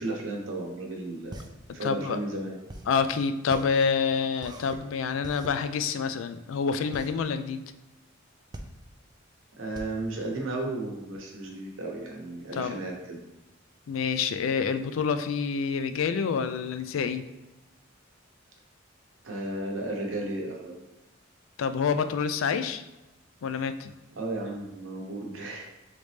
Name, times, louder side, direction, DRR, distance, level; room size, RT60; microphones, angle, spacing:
voice 1, 0.0-1.4 1.7-2.5 9.6-13.2 19.2-20.7 24.2-25.7, right 2 dB, 80° right, 0 dB, 0.9 m, -34 dB
sound 1, 0.9-11.2, right 1 dB, 20° right, 0.4 m, -44 dB
voice 2, 1.8-2.2 2.9-7.6 12.5-12.8 13.9-17.3 21.6-22.8 23.4-23.9, left 5 dB, 90° left, 10 dB, 0.3 m, -27 dB
4.0 x 3.3 x 3.3 m, 1.0 s
head